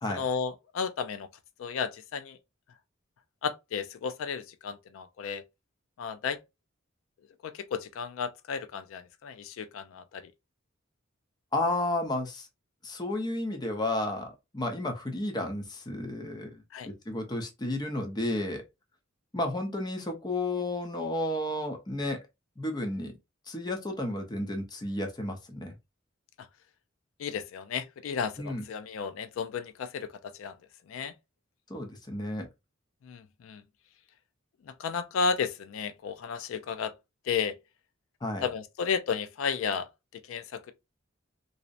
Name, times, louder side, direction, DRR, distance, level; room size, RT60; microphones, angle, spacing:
voice 1, 0.1-1.3 1.6-2.4 3.4-5.4 6.0-6.4 7.4-10.3 16.7-16.9 27.2-30.5 30.9-31.1 33.0-33.6 34.6-36.9 37.3-37.5 38.4-40.7, left 6 dB, 80° left, 0.3 m, -33 dB
voice 2, 11.5-12.5 12.8-18.6 19.3-22.2 22.6-23.1 23.5-25.7 28.4-28.6 31.7-32.5 38.2-38.5, left 1 dB, 20° left, 0.6 m, -32 dB
2.6 x 2.0 x 2.4 m
head